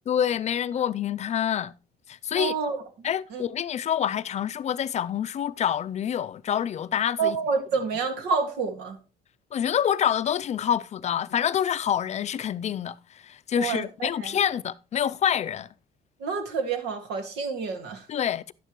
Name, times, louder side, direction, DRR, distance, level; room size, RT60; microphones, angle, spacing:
voice 1, 0.1-1.7 2.1-2.5 3.0-7.4 9.5-15.7 18.1-18.5, left 9 dB, 40° left, 0.5 m, -27 dB
voice 2, 2.3-3.4 7.2-9.0 13.6-14.4 16.2-18.1, right 5 dB, 85° right, 2.0 m, -29 dB
11.0 x 9.2 x 3.0 m
cardioid pair, 110°, 17 cm